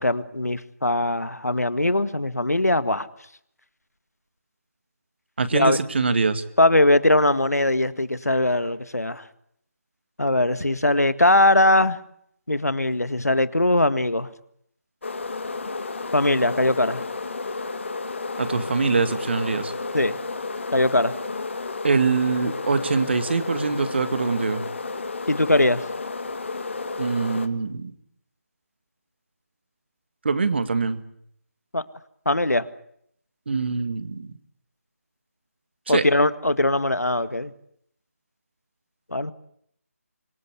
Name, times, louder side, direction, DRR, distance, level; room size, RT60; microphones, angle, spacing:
voice 1, 0.0-3.1 5.5-5.8 6.6-9.3 10.2-12.0 12.5-14.3 16.1-17.0 19.9-20.2 20.7-21.1 25.3-25.8 31.7-31.8 32.3-32.7 35.9-37.5 39.1-39.3, left 1 dB, 85° left, 14 dB, 1.9 m, -21 dB
voice 2, 5.4-6.4 18.4-19.7 21.8-24.6 27.0-27.9 30.2-31.0 33.5-34.3 35.9-36.1, right 4 dB, 45° right, 11 dB, 2.1 m, -23 dB
sound 1, 15.0-27.5, left 3 dB, 50° left, 2.1 m, -32 dB
25.5 x 22.0 x 8.3 m, 0.70 s
figure-of-eight pair, 160°, 8 cm